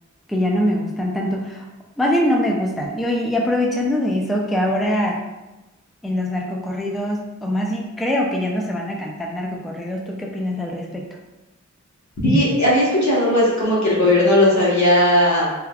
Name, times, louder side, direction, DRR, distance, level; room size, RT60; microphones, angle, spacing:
voice 1, 0.3-1.6 2.0-5.2 6.0-11.0, left 1 dB, ahead, -1 dB, 0.4 m, -23 dB
voice 2, 12.2-15.5, left 1 dB, 70° left, -6 dB, 1.1 m, -17 dB
3.4 x 2.2 x 2.3 m, 1.0 s
wide cardioid pair, 45°, 29 cm